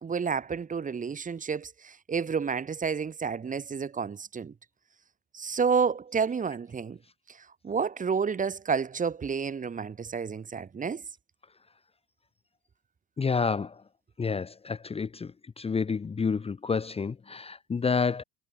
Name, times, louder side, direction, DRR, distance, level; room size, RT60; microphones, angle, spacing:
voice 1, 0.0-4.5 5.3-7.0 7.3-7.4 7.6-11.0, right 6 dB, 25° right, 1.8 m, -30 dB
voice 2, 13.2-13.7 14.2-15.3 15.6-18.2, left 5 dB, 20° left, 1.0 m, -29 dB
hypercardioid pair, 70°, 31 cm